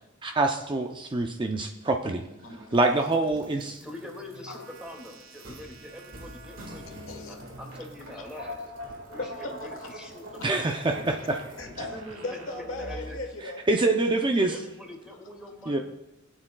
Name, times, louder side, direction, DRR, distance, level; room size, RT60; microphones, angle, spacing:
voice 1, 0.2-2.3 2.7-3.8 10.4-11.4 13.7-14.6 15.7-15.8, right 2 dB, 25° right, 4 dB, 0.5 m, -25 dB
sound 1, 2.1-13.3, equal, 75° right, 1.7 m, -43 dB
voice 2, 3.8-8.7 9.1-10.7 11.6-12.2 12.8-13.2 14.2-15.8, left 1 dB, 5° right, 0 dB, 2.1 m, -44 dB
voice 3, 9.2-9.9 10.4-10.6 11.6-13.6, left 2 dB, 75° left, 4 dB, 1.3 m, -37 dB
20.0 x 8.7 x 2.3 m, 0.90 s
head